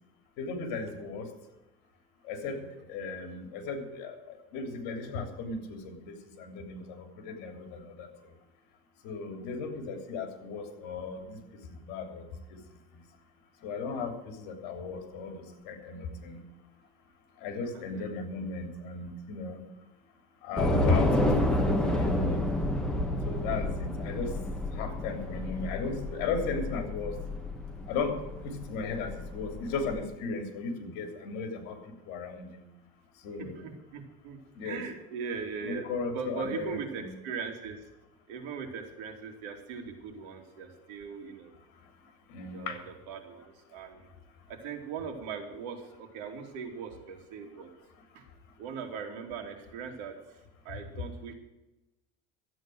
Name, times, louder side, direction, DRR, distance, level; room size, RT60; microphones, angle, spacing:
voice 1, 0.4-1.3 2.2-2.6 2.9-8.1 9.0-12.2 12.5-12.6 13.6-16.4 17.4-19.6 20.4-22.4 23.2-24.3 24.7-27.2 27.9-28.2 28.4-32.6 33.2-33.6 34.6-34.8 35.6-37.1 42.3-42.8, left 4 dB, 65° left, 5 dB, 3.2 m, -36 dB
voice 2, 17.7-18.0 24.8-24.9 33.4-37.8 38.3-41.5 42.5-44.1 44.5-47.7 48.1-48.2 48.6-50.2 50.6-51.3, right 6 dB, 70° right, 3 dB, 2.9 m, -40 dB
Train / Subway metro underground, 20.6-30.0, left 1 dB, 5° left, 1.6 m, -30 dB
13.5 x 9.0 x 7.8 m, 1.0 s
cardioid pair, 150°, 19 cm